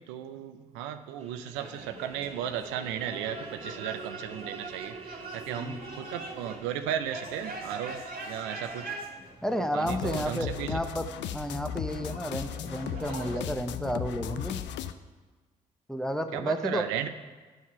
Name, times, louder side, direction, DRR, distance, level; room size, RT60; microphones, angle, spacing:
voice 1, 0.0-8.0 8.3-8.9 9.7-10.8 16.3-17.1, right 9 dB, 80° right, 9 dB, 0.5 m, -35 dB
sound 1, 1.2-9.0, right 4 dB, 35° right, 1.1 m, -47 dB
sound 2, 1.5-13.4, right 2 dB, 50° right, 1.7 m, -43 dB
voice 2, 9.4-11.1 11.3-14.6 15.9-16.8, equal, 5° left, 7 dB, 0.9 m, -32 dB
sound 3, 9.9-14.9, left 10 dB, 70° left, 0.5 m, -36 dB
10.5 x 4.7 x 5.6 m, 1.4 s
hypercardioid pair, 40°, 19 cm